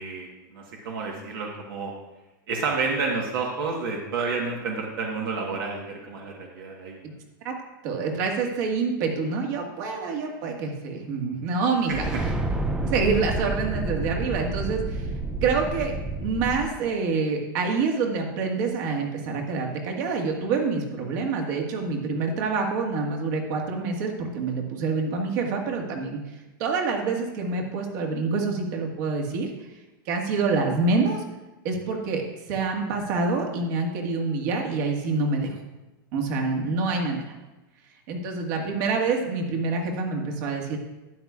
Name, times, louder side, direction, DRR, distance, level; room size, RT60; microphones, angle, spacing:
voice 1, 0.0-1.9 2.5-7.0 11.9-12.2, right 4 dB, 75° right, -1 dB, 1.4 m, -30 dB
voice 2, 7.8-12.1 12.8-15.1 15.4-15.9 16.2-26.2 26.6-29.5 30.0-31.2 31.6-35.5 36.1-37.2 38.1-40.8, right 4 dB, 55° right, 1 dB, 1.7 m, -26 dB
sound 1, 11.9-16.6, right 2 dB, 5° right, 0.4 m, -29 dB
12.5 x 9.3 x 2.4 m, 1.1 s
supercardioid pair, 150°, 12 cm